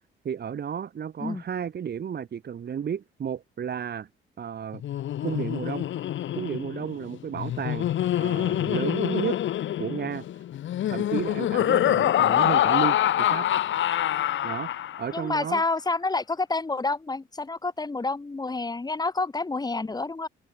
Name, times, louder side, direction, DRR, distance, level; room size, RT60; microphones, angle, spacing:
voice 1, 0.2-4.1 4.4-4.8 5.2-5.9 6.4-7.9 8.2-9.4 9.8-10.3 10.9-13.5 14.4-15.6, right 8 dB, 55° right, 5.8 m, -32 dB
Laughter, 4.7-15.2, left 12 dB, 75° left, 7.6 m, -25 dB
voice 2, 15.1-20.3, left 3 dB, 20° left, 2.2 m, -28 dB
cardioid pair, 90°, 20 cm